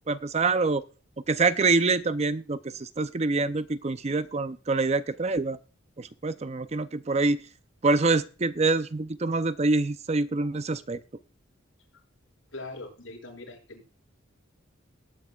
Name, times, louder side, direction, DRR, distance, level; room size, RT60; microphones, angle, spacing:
voice 1, 0.1-0.8 1.3-5.6 6.0-7.4 7.8-11.0, right 3 dB, 35° right, 13 dB, 0.5 m, -25 dB
voice 2, 12.5-13.9, left 2 dB, 75° left, -1 dB, 6.4 m, -42 dB
19.0 x 9.6 x 2.4 m, 0.34 s
head